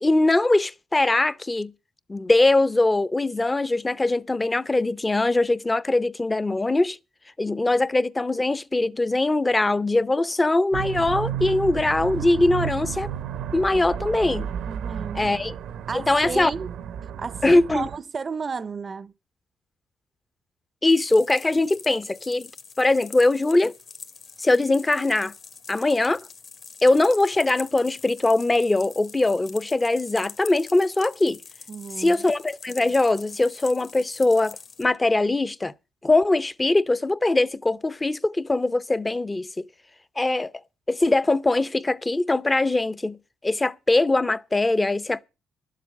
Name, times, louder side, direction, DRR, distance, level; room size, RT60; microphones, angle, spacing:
voice 1, 0.0-1.7 2.1-7.0 7.4-13.1 13.5-14.5 15.1-15.5 15.9-16.5 17.4-17.9 20.8-22.5 22.8-23.7 24.4-25.3 25.7-26.2 26.8-31.4 32.0-35.7 36.0-39.6 40.2-40.5 40.9-43.2 43.4-45.2, left 2 dB, 20° left, 0.7 m, -21 dB
sound 1, 10.7-18.0, right 9 dB, 80° right, 0.9 m, -32 dB
voice 2, 14.7-15.3 15.9-16.7 17.2-19.1 31.7-32.2, right 5 dB, 35° right, 0.6 m, -33 dB
sound 2, 20.9-34.9, left 5 dB, 55° left, 1.7 m, -44 dB
12.0 x 7.6 x 8.2 m
cardioid pair, 90°, 0 cm